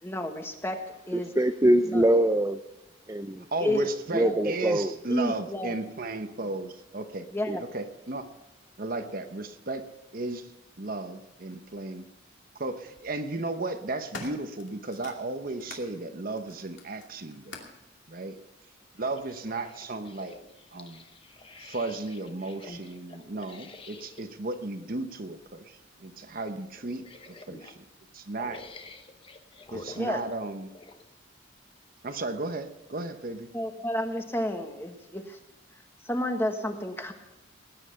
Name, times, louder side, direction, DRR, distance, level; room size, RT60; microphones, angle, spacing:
voice 1, 0.0-0.8 1.1-1.3 1.9-2.1 3.6-3.9 4.2-4.4 5.1-5.8 7.3-7.6 29.9-30.2 33.5-35.4 36.0-37.1, left 1 dB, 10° left, 5 dB, 1.4 m, -31 dB
voice 2, 1.1-2.6 3.1-3.5 4.1-5.0 7.5-7.6, right 1 dB, 15° right, 8 dB, 0.5 m, -23 dB
voice 3, 3.5-7.2 7.7-8.3 8.8-9.8 10.1-10.5 10.8-12.1 12.6-17.6 18.1-18.4 19.0-20.3 20.7-21.0 21.6-25.7 26.0-27.7 28.1-28.6 29.7-30.7 32.0-33.5, right 2 dB, 45° right, 8 dB, 1.0 m, -34 dB
sound 1, 11.5-11.6 12.7-13.1 13.6-15.9 16.3-17.8 18.7-18.8, left 3 dB, 70° left, 2.5 m, -46 dB
sound 2, 19.0-24.3 25.3-25.5 25.9-26.0 26.8-27.8 28.4-31.1 31.7-31.8, left 2 dB, 25° left, 1.1 m, -48 dB
19.0 x 9.9 x 5.7 m, 0.93 s
head